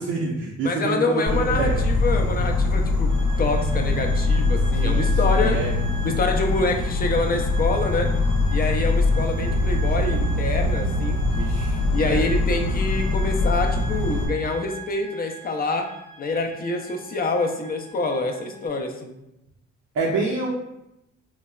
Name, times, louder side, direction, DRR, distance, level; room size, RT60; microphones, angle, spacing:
voice 1, 0.0-1.8 4.8-5.7 11.3-12.2 19.9-20.5, right 3 dB, 55° right, -2 dB, 0.6 m, -27 dB
voice 2, 0.6-3.1 3.4-5.6 6.0-8.1 8.5-11.2 11.9-15.9 16.2-19.1, left 3 dB, 30° left, 3 dB, 0.5 m, -26 dB
Insect, 1.3-14.3, left 2 dB, 75° left, 0.8 m, -22 dB
sound 1, 3.1-18.7, right 3 dB, 15° right, 0.7 m, -42 dB
3.8 x 2.1 x 2.3 m, 0.87 s
cardioid pair, 90°, 30 cm